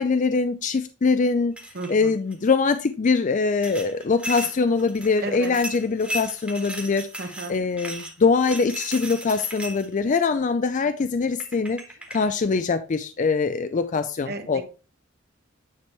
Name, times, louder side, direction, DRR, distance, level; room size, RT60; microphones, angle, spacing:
voice 1, 0.0-1.6 1.9-11.8 12.1-14.6, left 4 dB, 35° left, 0.4 m, -23 dB
sound 1, 1.6-1.9 2.3-2.8 3.6-10.0 11.0-11.1 11.4-12.3, right 1 dB, 5° right, 1.7 m, -36 dB
voice 2, 1.7-2.1 5.2-5.6 7.2-7.5 14.3-14.6, right 2 dB, 50° right, 1.2 m, -33 dB
9.5 x 3.6 x 4.4 m
head